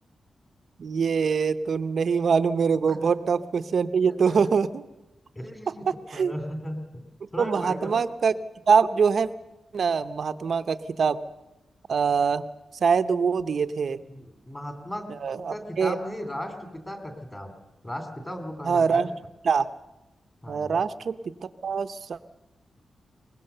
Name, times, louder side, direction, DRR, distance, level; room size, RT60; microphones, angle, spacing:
voice 1, 0.8-4.8 5.9-6.3 7.4-8.3 8.7-9.3 9.7-11.2 11.9-12.5 12.8-14.0 15.1-16.0 18.6-19.1 19.4-19.7 20.5-21.1 21.4-22.2, right 6 dB, 50° right, 11 dB, 0.8 m, -24 dB
voice 2, 4.0-4.4 5.3-7.0 7.3-8.0 14.1-15.1 15.5-17.5 17.8-19.1 20.4-20.8, equal, 15° left, 6 dB, 2.6 m, -36 dB
22.5 x 20.0 x 6.7 m, 0.98 s
wide cardioid pair, 175°, 0 cm